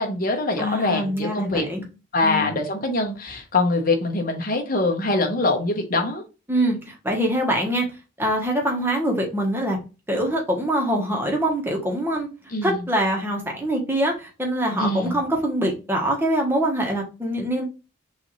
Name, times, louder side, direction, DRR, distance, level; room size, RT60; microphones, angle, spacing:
voice 1, 0.0-1.7 2.1-6.2 12.5-12.8 14.8-15.2, left 2 dB, 45° left, 4 dB, 1.1 m, -23 dB
voice 2, 0.6-1.8 2.2-2.5 6.5-7.9 8.2-9.8 10.1-12.3 12.6-17.6, right 1 dB, 10° right, 1 dB, 1.2 m, -24 dB
6.1 x 2.7 x 3.1 m, 0.31 s
head